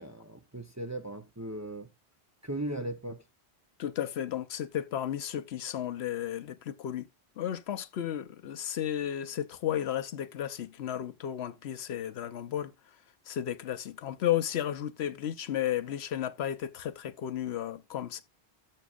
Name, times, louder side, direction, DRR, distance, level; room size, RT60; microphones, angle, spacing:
voice 1, 0.0-1.9 2.4-3.2, right 1 dB, 20° right, 0.7 m, -37 dB
voice 2, 3.8-7.1 7.4-12.7 13.3-18.2, left 11 dB, 75° left, 1.0 m, -33 dB
13.5 x 6.1 x 2.5 m
omnidirectional pair, 1.1 m